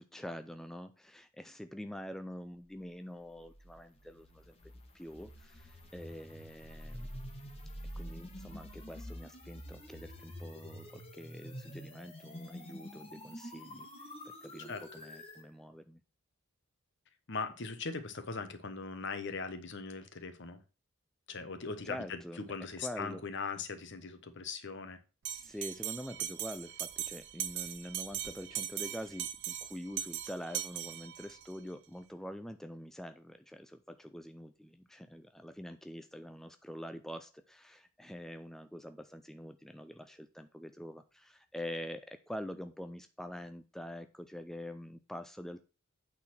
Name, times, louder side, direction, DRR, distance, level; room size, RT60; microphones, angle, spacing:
voice 1, 0.0-7.1 8.0-13.9 14.2-16.0 21.9-22.4 22.8-23.2 25.3-45.6, equal, ahead, 8 dB, 0.4 m, -45 dB
sound 1, 3.3-15.5, equal, 30° left, 1.6 m, -47 dB
voice 2, 17.3-20.6 21.3-25.0, left 4 dB, 60° left, 10 dB, 1.1 m, -40 dB
Bell, 25.2-31.5, right 11 dB, 60° right, 0.6 m, -40 dB
8.7 x 4.1 x 6.0 m, 0.32 s
head